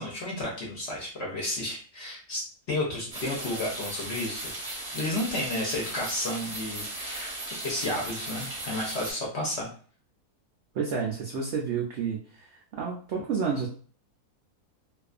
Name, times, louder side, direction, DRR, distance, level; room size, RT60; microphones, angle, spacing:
voice 1, 0.0-4.6 4.9-7.3 7.6-9.7, left 1 dB, 55° left, -2 dB, 0.8 m, -32 dB
sound 1, 3.1-9.1, right 2 dB, 35° right, 0.6 m, -37 dB
voice 2, 10.7-12.4 12.7-13.7, right 6 dB, 90° right, -1 dB, 0.6 m, -30 dB
2.5 x 2.4 x 2.4 m, 0.42 s
omnidirectional pair, 1.7 m